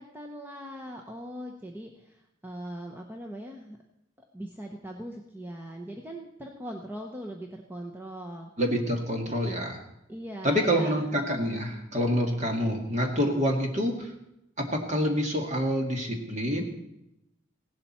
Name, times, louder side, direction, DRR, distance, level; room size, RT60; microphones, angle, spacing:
voice 1, 0.0-3.8 4.3-8.5 10.1-10.9, equal, 10° right, 2 dB, 0.8 m, -40 dB
voice 2, 8.6-9.8 10.4-14.1 14.6-16.6, equal, 35° right, 2 dB, 1.9 m, -27 dB
16.5 x 11.5 x 4.3 m, 0.85 s
head